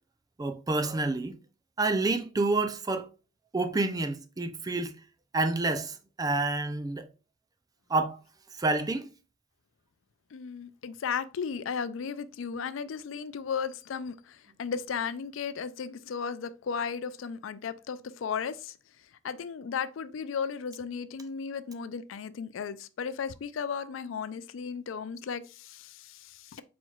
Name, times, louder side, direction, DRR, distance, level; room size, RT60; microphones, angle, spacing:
voice 1, 0.4-1.4 1.8-3.1 3.5-4.9 5.3-5.9 6.2-7.0 7.9-8.2 8.6-9.1, right 2 dB, 20° right, 0.4 m, -28 dB
voice 2, 10.3-18.8 19.2-26.6, left 6 dB, 75° left, 0.4 m, -35 dB
4.4 x 4.2 x 2.3 m
head